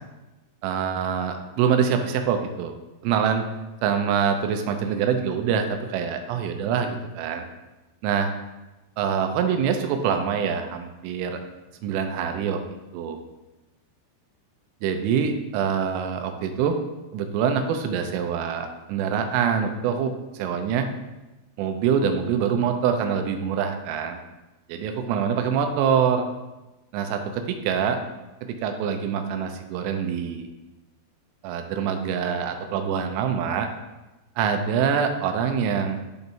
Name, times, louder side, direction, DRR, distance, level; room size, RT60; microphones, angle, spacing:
voice 1, 0.6-2.7 3.0-3.5 3.8-7.5 8.0-8.3 9.0-11.4 11.8-12.6 12.9-13.2 14.8-16.8 17.1-20.1 20.4-20.9 21.6-24.2 24.7-26.3 26.9-28.0 28.5-30.5 31.4-33.7 34.4-36.0, right 7 dB, 85° right, 6 dB, 3.1 m, -25 dB
12.0 x 4.0 x 2.6 m, 1.1 s
omnidirectional pair, 5.5 m